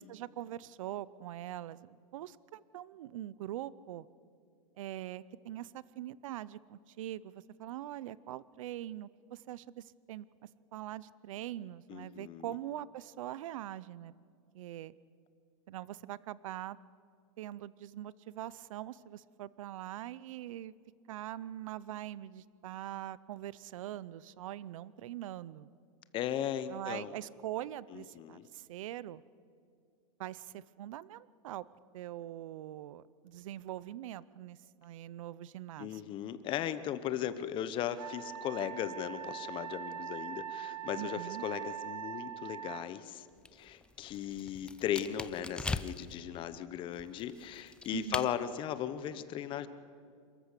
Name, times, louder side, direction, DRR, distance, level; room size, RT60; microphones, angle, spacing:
voice 1, 0.0-4.1 4.8-10.3 10.7-14.1 14.5-14.9 15.7-16.8 17.4-20.7 21.1-25.7 26.7-29.2 30.2-31.7 31.9-36.1 41.0-41.4 47.9-48.3, right 13 dB, 70° right, 20 dB, 0.6 m, -43 dB
voice 2, 11.9-12.5 26.1-27.1 27.9-28.5 35.8-43.3 43.5-49.7, left 10 dB, 30° left, 13 dB, 0.9 m, -37 dB
Wind instrument woodwind instrument, 38.0-42.9, right 10 dB, 85° right, 1.2 m, -42 dB
sound 1, 43.3-46.2 46.9-48.3, left 3 dB, 5° left, 0.4 m, -40 dB
28.0 x 14.0 x 6.7 m, 2.3 s
supercardioid pair, 145°, 17 cm